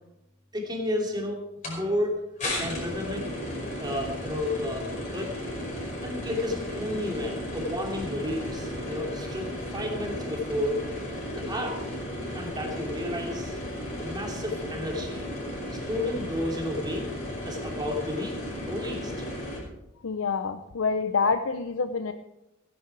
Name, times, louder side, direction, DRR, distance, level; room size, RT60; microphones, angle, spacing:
voice 1, 0.5-2.2 2.5-3.3 3.8-5.3 6.0-9.5 9.7-10.9 11.3-11.8 12.3-13.6 14.0-15.3 15.9-17.1 17.4-18.4 18.7-19.3, left 1 dB, 20° right, 0 dB, 2.8 m, -32 dB
sound 1, 1.6-1.8 2.4-19.6, left 1 dB, 35° left, 5.2 m, -34 dB
voice 2, 20.0-22.1, left 5 dB, 75° left, 9 dB, 0.6 m, -27 dB
16.5 x 10.5 x 4.8 m, 0.90 s
head